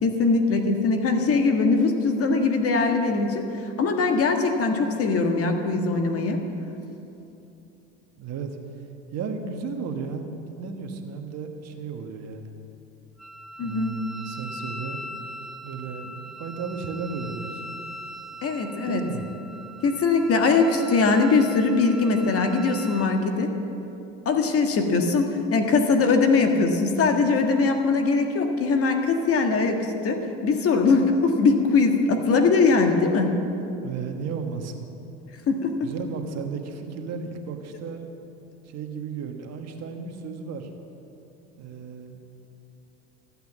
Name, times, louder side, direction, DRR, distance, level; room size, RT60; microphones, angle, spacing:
voice 1, 0.0-3.5 3.8-6.4 13.6-13.9 18.4-19.0 19.8-23.5 24.2-33.4 35.5-35.9, left 4 dB, 45° left, 5 dB, 1.7 m, -21 dB
voice 2, 8.2-8.6 9.1-12.5 13.6-15.0 15.6-17.7 18.9-19.2 33.8-34.9 35.8-38.0 38.7-40.7 41.6-42.2, right 5 dB, 50° right, 4 dB, 1.6 m, -34 dB
Wind instrument woodwind instrument, 13.2-23.1, equal, ahead, 1.3 m, -40 dB
14.0 x 9.1 x 7.4 m, 2.8 s
supercardioid pair, 95°, 33 cm